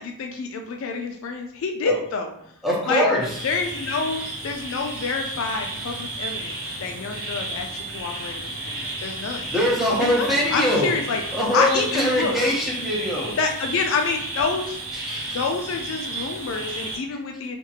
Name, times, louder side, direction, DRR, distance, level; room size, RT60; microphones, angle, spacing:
voice 1, 0.0-2.3 2.9-3.1 3.4-9.5 10.0-11.2 11.5-12.4 13.4-14.8 15.3-17.6, left 4 dB, 60° left, 4 dB, 0.3 m, -27 dB
voice 2, 2.6-3.2 9.5-10.9 11.3-13.4 14.9-15.4, left 1 dB, ahead, -6 dB, 0.7 m, -23 dB
sound 1, 3.2-17.0, right 2 dB, 75° right, 1.1 m, -33 dB
2.8 x 2.5 x 2.7 m, 0.69 s
head